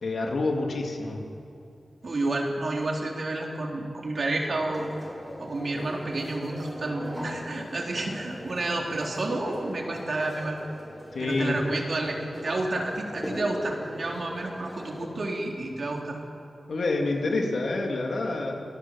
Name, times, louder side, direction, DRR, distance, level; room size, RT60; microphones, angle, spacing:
voice 1, 0.0-1.2 11.1-11.6 16.7-18.6, left 2 dB, 70° left, 1 dB, 3.2 m, -27 dB
voice 2, 2.0-4.9 5.4-10.6 11.2-12.2 12.4-16.2, right 2 dB, 55° right, 0 dB, 3.8 m, -30 dB
sound 1, 4.4-15.0, equal, ahead, 5.6 m, -39 dB
26.5 x 17.5 x 7.6 m, 2.6 s
wide cardioid pair, 120°, 0 cm